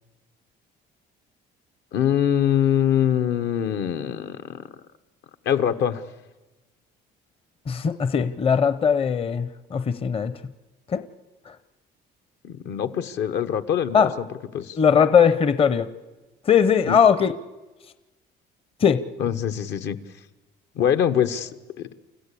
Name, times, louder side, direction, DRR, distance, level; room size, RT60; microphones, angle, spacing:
voice 1, 1.9-4.6 5.4-6.0 12.4-14.3 14.5-14.8 16.9-17.0 19.2-20.0 20.7-21.9, left 9 dB, 70° left, 11 dB, 1.1 m, -23 dB
voice 2, 7.7-10.3 10.9-11.0 13.9-14.1 14.8-15.9 16.5-17.3 18.8-19.0, left 7 dB, 30° left, 12 dB, 0.7 m, -19 dB
29.5 x 14.5 x 8.5 m, 1.2 s
cardioid pair, 130°, 19 cm